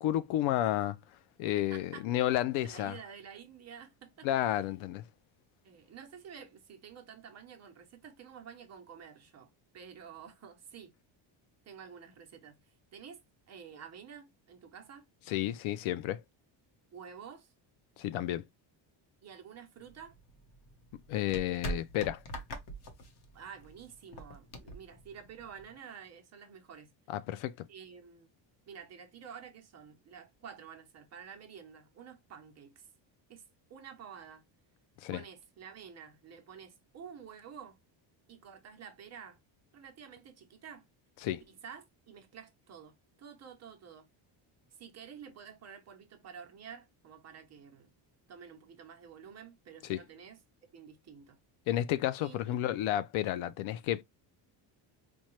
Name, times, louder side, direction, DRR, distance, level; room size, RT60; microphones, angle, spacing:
voice 1, 0.0-1.0 1.4-2.9 4.2-5.0 15.3-16.2 18.0-18.4 21.1-22.2 27.1-27.7 35.0-35.2 41.2-41.4 49.9-50.0 51.7-54.0, left 13 dB, 85° left, 0.6 m, -31 dB
voice 2, 1.5-2.1 2.6-4.3 5.6-11.0 11.6-13.2 13.5-15.1 16.9-17.5 19.2-20.1 23.3-26.9 27.7-28.3 28.7-32.9 33.3-33.4 33.7-34.5 35.1-37.8 38.3-39.4 39.7-40.9 41.5-44.1 44.7-47.9 48.3-51.4 52.2-52.6, right 7 dB, 35° right, 0.7 m, -50 dB
sound 1, 19.8-25.8, right 1 dB, 55° left, 1.0 m, -44 dB
4.4 x 2.2 x 3.0 m
cardioid pair, 160°, 47 cm